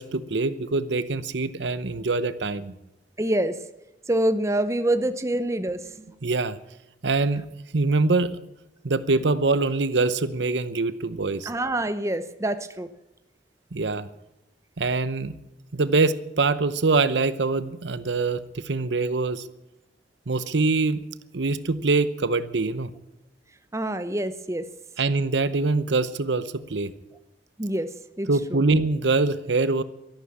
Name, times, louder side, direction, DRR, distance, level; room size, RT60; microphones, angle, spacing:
voice 1, 0.0-2.8 6.2-6.6 7.0-7.5 7.7-8.4 8.8-11.5 13.7-14.1 14.8-15.3 15.7-19.5 20.3-21.0 21.3-22.9 25.0-26.9 28.3-29.8, right 3 dB, 80° right, 15 dB, 0.8 m, -24 dB
voice 2, 3.2-3.5 4.1-6.1 11.5-12.9 23.7-24.7 27.6-27.9 28.2-28.6, right 1 dB, 15° right, 11 dB, 0.7 m, -26 dB
13.5 x 11.5 x 8.6 m, 0.90 s
head